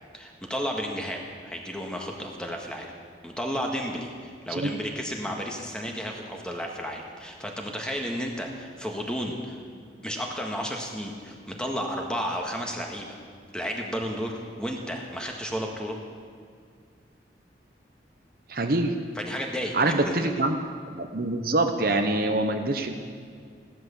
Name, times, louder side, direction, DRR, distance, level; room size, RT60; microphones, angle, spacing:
voice 1, 0.1-2.9 3.2-9.6 10.0-13.2 13.5-16.0 19.1-19.7 20.0-20.1, equal, 5° left, 1 dB, 1.7 m, -32 dB
voice 2, 18.5-18.9 19.7-20.6 20.9-22.9, right 2 dB, 55° right, 6 dB, 0.9 m, -25 dB
15.5 x 12.5 x 7.1 m, 2.2 s
head